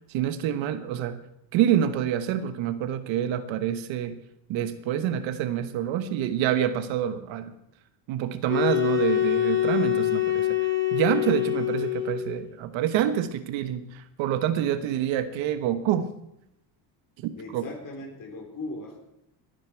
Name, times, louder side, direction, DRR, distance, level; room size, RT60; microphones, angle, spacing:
voice 1, 0.1-1.2 1.5-4.2 4.5-7.5 8.1-10.5 10.9-16.1 17.2-17.7, right 10 dB, 90° right, 10 dB, 1.3 m, -27 dB
sound 1, 8.5-12.4, left 13 dB, 25° left, 2.8 m, -25 dB
voice 2, 17.4-19.0, left 2 dB, 45° left, 2 dB, 4.2 m, -38 dB
21.0 x 9.8 x 4.6 m, 0.81 s
cardioid pair, 130°, 45 cm